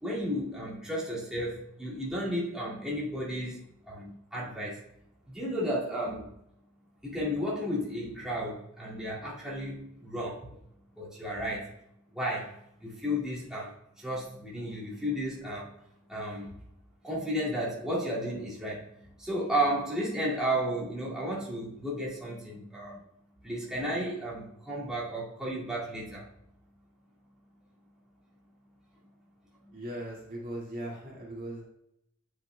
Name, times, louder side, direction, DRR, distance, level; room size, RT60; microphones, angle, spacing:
voice 1, 0.0-4.8 5.3-6.3 7.0-10.5 11.0-11.7 12.1-15.7 16.1-16.6 17.0-23.0 23.4-26.3, equal, 5° right, -8 dB, 2.3 m, -33 dB
voice 2, 29.7-31.6, right 1 dB, 40° right, -3 dB, 2.1 m, -39 dB
9.8 x 5.9 x 2.3 m, 0.80 s
head